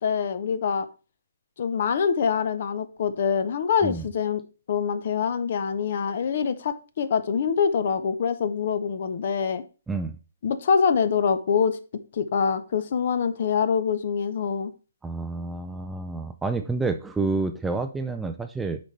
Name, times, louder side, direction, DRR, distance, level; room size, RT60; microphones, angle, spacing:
voice 1, 0.0-0.9 1.6-4.4 4.7-9.6 10.4-11.8 12.1-14.7, left 6 dB, 45° left, 12 dB, 0.7 m, -25 dB
voice 2, 15.0-18.8, right 3 dB, 5° right, 7 dB, 0.3 m, -29 dB
8.2 x 5.2 x 3.2 m, 0.34 s
hypercardioid pair, 165°, 0 cm